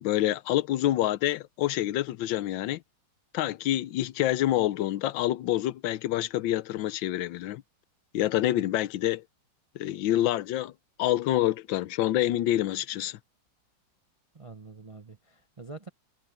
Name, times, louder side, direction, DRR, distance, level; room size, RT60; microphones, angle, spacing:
voice 1, 0.0-2.8 3.3-7.6 8.1-9.2 9.7-10.7 11.0-13.2, left 14 dB, 90° left, 1.4 m, -27 dB
voice 2, 14.3-15.9, right 3 dB, 40° right, 0.4 m, -45 dB
omnidirectional pair, 2.0 m